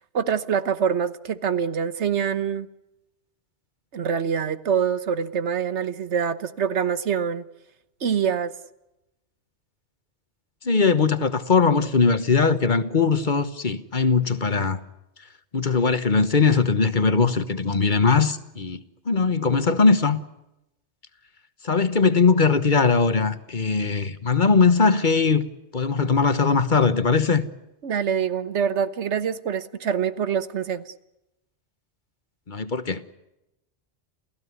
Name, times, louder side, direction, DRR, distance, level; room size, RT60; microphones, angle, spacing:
voice 1, 0.1-2.7 3.9-7.4 8.0-8.5 27.8-30.9, right 7 dB, 85° right, 1.4 m, -25 dB
voice 2, 10.6-14.8 15.5-20.2 21.6-25.4 25.7-27.4 32.5-33.0, left 4 dB, 45° left, 1.3 m, -20 dB
28.5 x 16.0 x 9.6 m
omnidirectional pair, 1.1 m